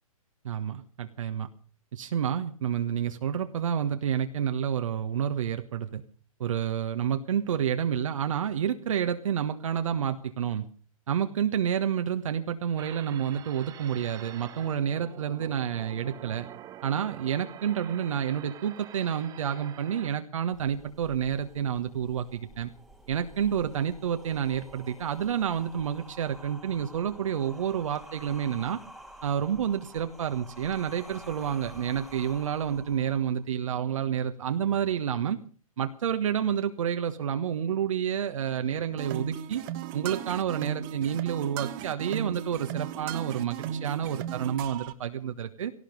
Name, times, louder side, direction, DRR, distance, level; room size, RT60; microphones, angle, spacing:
voice 1, 0.4-1.5 1.9-6.0 6.4-10.7 11.1-16.5 16.8-22.7 23.1-28.8 29.2-35.4 35.8-39.6 39.9-45.7, right 8 dB, 60° right, 7 dB, 1.4 m, -29 dB
sound 1, 12.8-20.1, right 11 dB, 20° right, 1.0 m, -46 dB
sound 2, 20.5-33.5, right 1 dB, ahead, 1.8 m, -49 dB
sound 3, 39.0-44.9, right 10 dB, 35° right, 1.3 m, -36 dB
17.5 x 15.0 x 5.3 m, 0.42 s
figure-of-eight pair, 120°, 19 cm